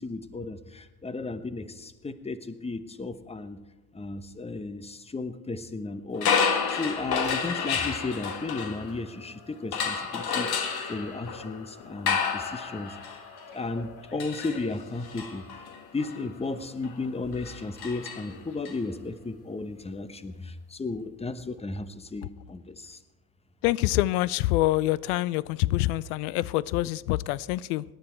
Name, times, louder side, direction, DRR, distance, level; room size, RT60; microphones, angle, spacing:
voice 1, 0.0-3.6 3.9-13.2 13.5-15.6 15.9-23.0, left 3 dB, 15° left, 12 dB, 1.0 m, -34 dB
sound 1, 6.1-9.2 9.7-18.7, left 6 dB, 50° left, 1.8 m, -31 dB
voice 2, 23.6-27.8, left 17 dB, 70° left, 22 dB, 0.6 m, -26 dB
18.0 x 10.5 x 4.5 m, 1.1 s
hypercardioid pair, 70°, 47 cm